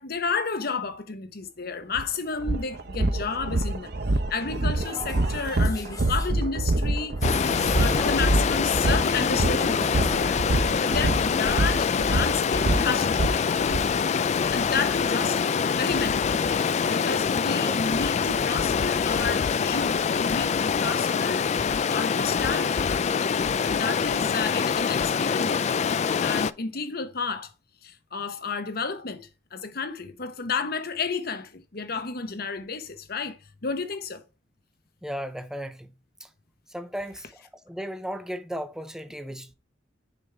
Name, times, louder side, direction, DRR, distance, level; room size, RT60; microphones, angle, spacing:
voice 1, 0.0-7.2 7.8-10.4 10.8-13.5 14.5-22.9 23.6-25.7 26.2-27.5 27.8-34.2, left 5 dB, 55° left, 1.0 m, -32 dB
sound 1, 1.9-2.0 2.4-13.8, right 2 dB, 60° right, 0.9 m, -26 dB
sound 2, 4.8-6.3 7.2-8.3 8.6-10.3, left 2 dB, 20° left, 1.4 m, -35 dB
Stream, 7.2-26.5, left 6 dB, 40° left, 0.3 m, -25 dB
voice 2, 35.0-35.9 36.2-36.3 36.7-39.5, equal, 5° right, 0.6 m, -35 dB
7.0 x 5.3 x 3.4 m
head